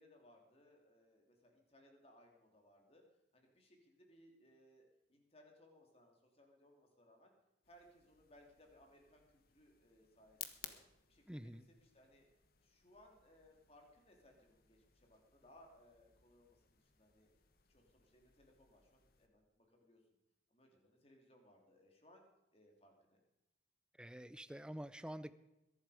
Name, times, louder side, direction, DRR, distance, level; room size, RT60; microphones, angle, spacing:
voice 1, 0.0-3.0 3.3-4.8 5.1-7.3 7.7-10.8 11.1-12.2 12.6-17.3 17.7-20.0 20.5-22.2 22.5-23.2, left 1 dB, 35° left, 2 dB, 2.8 m, -66 dB
sound 1, 7.6-19.3, left 10 dB, 50° left, 1.2 m, -59 dB
voice 2, 11.3-11.7 24.0-25.3, equal, 5° right, 14 dB, 0.5 m, -48 dB
22.0 x 11.5 x 5.0 m, 0.95 s
head